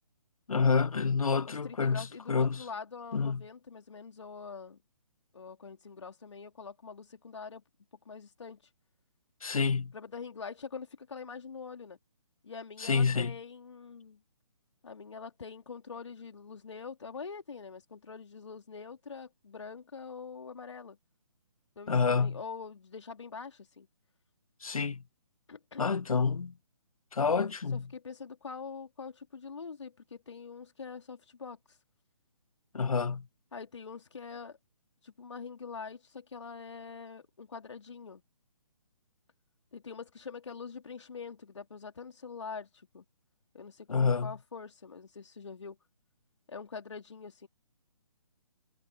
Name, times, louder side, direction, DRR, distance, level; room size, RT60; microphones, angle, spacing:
voice 1, 0.5-2.6 3.1-3.4 9.4-9.9 12.8-13.3 21.9-22.4 24.6-25.0 25.8-26.5 27.1-27.8 32.7-33.3 43.9-44.3, left 5 dB, 85° left, 0.4 m, -28 dB
voice 2, 1.5-4.8 5.3-7.6 8.1-8.6 9.9-12.0 12.4-14.2 14.8-21.0 21.8-23.9 25.5-25.9 27.7-31.6 33.5-34.6 35.0-38.2 39.7-43.0 43.5-45.8 46.5-47.5, left 5 dB, 55° left, 4.1 m, -44 dB
figure-of-eight pair, 140°, 18 cm